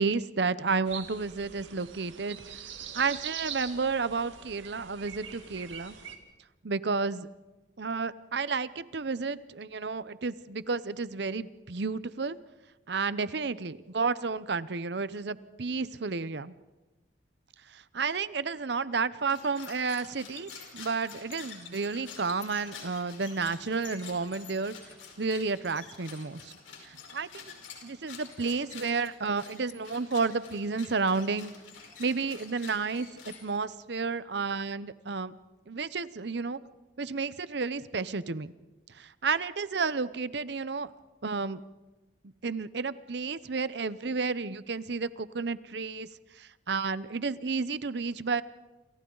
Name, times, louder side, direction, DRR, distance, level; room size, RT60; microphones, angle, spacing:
voice 1, 0.0-2.6 2.9-5.9 6.6-7.3 7.8-12.4 12.9-16.5 17.7-24.7 25.2-26.5 26.8-27.5 27.8-31.5 32.0-35.3 35.7-36.6 37.0-38.5 38.9-40.9 41.2-41.6 42.4-46.1 46.4-48.4, right 4 dB, 60° right, 16 dB, 0.7 m, -31 dB
sound 1, 0.9-6.2, right 8 dB, 85° right, 2.5 m, -43 dB
sound 2, 19.2-33.8, left 6 dB, 90° left, 4.8 m, -48 dB
28.5 x 28.0 x 3.9 m, 1.1 s
head